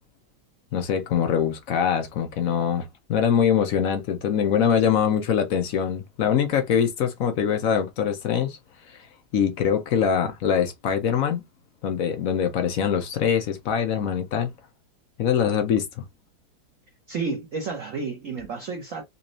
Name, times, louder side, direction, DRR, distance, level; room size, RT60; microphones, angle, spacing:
voice 1, 0.7-8.6 8.9-9.0 9.3-11.4 11.8-14.5 15.2-15.9, left 8 dB, 80° left, 0.7 m, -23 dB
voice 2, 17.1-19.0, right 4 dB, 55° right, 0.9 m, -31 dB
4.1 x 3.0 x 2.5 m
omnidirectional pair, 2.4 m